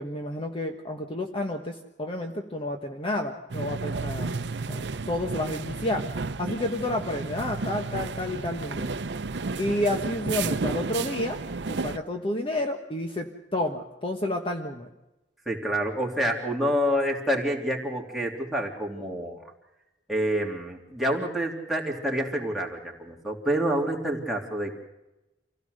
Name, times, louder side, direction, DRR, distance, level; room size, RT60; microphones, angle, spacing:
voice 1, 0.0-4.4 4.7-6.1 6.4-9.0 9.6-11.4 11.7-14.9, left 1 dB, 30° left, 3 dB, 1.3 m, -30 dB
sound 1, 3.5-12.0, right 4 dB, 70° right, 0.7 m, -32 dB
voice 2, 15.5-19.4 20.1-24.8, equal, ahead, -2 dB, 3.0 m, -28 dB
26.0 x 16.5 x 6.6 m, 0.99 s
head